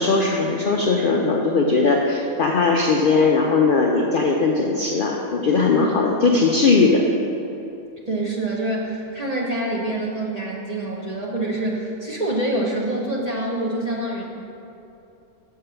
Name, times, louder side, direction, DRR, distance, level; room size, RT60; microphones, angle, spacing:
voice 1, 0.0-7.0, left 4 dB, 85° left, 0 dB, 0.4 m, -19 dB
voice 2, 8.1-14.2, right 1 dB, 35° right, -3 dB, 0.6 m, -26 dB
6.7 x 4.6 x 6.8 m, 2.7 s
omnidirectional pair, 1.6 m